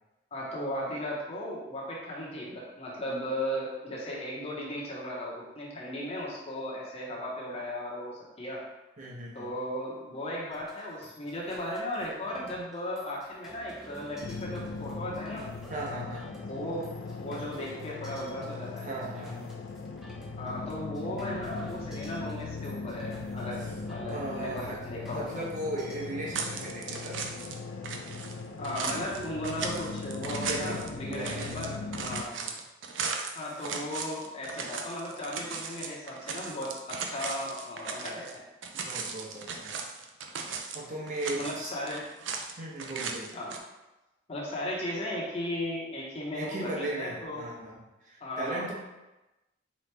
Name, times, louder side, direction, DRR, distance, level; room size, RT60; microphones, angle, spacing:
voice 1, 0.3-8.6 9.3-15.5 16.4-16.9 17.2-18.9 20.4-23.6 23.9-25.4 28.6-31.7 32.0-32.4 33.4-38.4 41.3-42.0 43.3-43.5 44.3-47.5 48.2-48.7, left 1 dB, 35° left, -5 dB, 0.8 m, -36 dB
voice 2, 9.0-9.5 15.7-16.3 18.8-19.6 24.1-24.8 25.1-27.3 30.4-30.8 31.1-32.5 33.6-33.7 38.7-39.8 40.7-41.7 42.6-43.3 46.3-47.8 48.0-48.7, right 1 dB, 40° right, -4 dB, 0.9 m, -37 dB
sound 1, 10.5-26.0, equal, 5° right, 0.7 m, -52 dB
sound 2, 14.2-32.2, left 4 dB, 70° left, 0.4 m, -39 dB
sound 3, 26.3-27.6 27.8-38.3 38.6-40.8 41.1-42.5 42.8-43.6, right 5 dB, 70° right, 0.4 m, -37 dB
3.8 x 3.1 x 3.3 m, 1.0 s
head